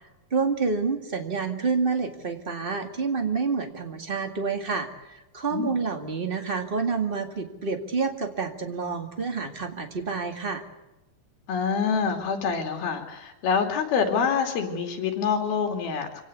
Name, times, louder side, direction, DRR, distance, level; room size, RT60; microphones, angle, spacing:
voice 1, 0.3-10.6, right 4 dB, 25° right, 5 dB, 1.2 m, -28 dB
voice 2, 11.5-16.2, left 6 dB, 75° left, 4 dB, 4.6 m, -26 dB
25.5 x 18.0 x 8.2 m, 1.0 s
omnidirectional pair, 4.4 m